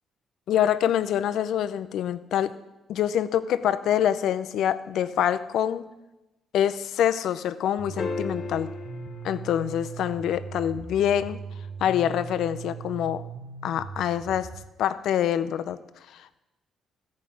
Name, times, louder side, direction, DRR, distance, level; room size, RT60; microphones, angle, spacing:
voice 1, 0.5-2.5 2.9-5.8 6.5-8.7 9.2-11.4 11.8-13.2 13.6-14.5 14.8-15.8, left 10 dB, 75° left, 12 dB, 0.6 m, -25 dB
sound 1, 7.8-14.6, right 6 dB, 70° right, 1.1 m, -39 dB
sound 2, 8.0-10.5 12.7-12.8, left 4 dB, 40° left, 1.2 m, -36 dB
14.0 x 5.3 x 8.6 m, 1.0 s
cardioid pair, 90°, 0 cm